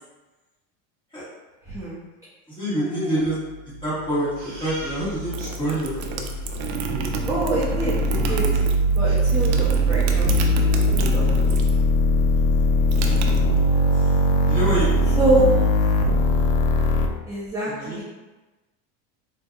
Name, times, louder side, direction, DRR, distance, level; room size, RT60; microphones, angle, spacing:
voice 1, 1.7-2.0 2.8-3.2 7.3-8.5 9.0-10.5 10.9-11.2 15.1-15.5 17.3-18.0, right 2 dB, 10° right, -9 dB, 0.4 m, -25 dB
voice 2, 2.6-3.3 3.8-6.3 9.5-9.6 13.0-13.1 13.9-14.1 14.5-15.1 17.7-18.0, right 1 dB, 10° left, -10 dB, 1.4 m, -27 dB
sound 1, 3.7-17.1, equal, 65° left, 0.5 m, -21 dB
Crying sobbing, 4.4-5.5 5.9-6.0 6.3-6.6 8.5-8.6 9.0-9.8 10.2-10.3 10.7-10.8 11.1-11.8, right 1 dB, 30° right, 1.4 m, -42 dB
sound 2, 5.1-11.9 12.1-14.0, right 6 dB, 60° right, 0.5 m, -31 dB
3.7 x 2.6 x 2.3 m, 1.2 s
supercardioid pair, 145°, 40 cm